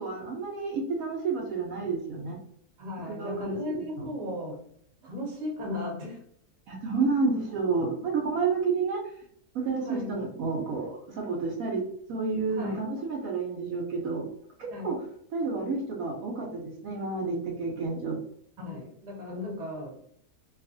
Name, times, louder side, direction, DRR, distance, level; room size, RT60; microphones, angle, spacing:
voice 1, 0.0-2.4 3.1-4.1 6.7-9.1 9.5-14.3 14.6-15.0 15.3-18.2, right 4 dB, 70° right, -1 dB, 0.9 m, -30 dB
voice 2, 2.8-4.6 5.0-6.2 9.8-10.1 12.5-12.8 14.7-15.0 18.6-20.0, left 2 dB, 35° right, -1 dB, 0.8 m, -36 dB
2.6 x 2.3 x 2.5 m, 0.66 s
omnidirectional pair, 1.6 m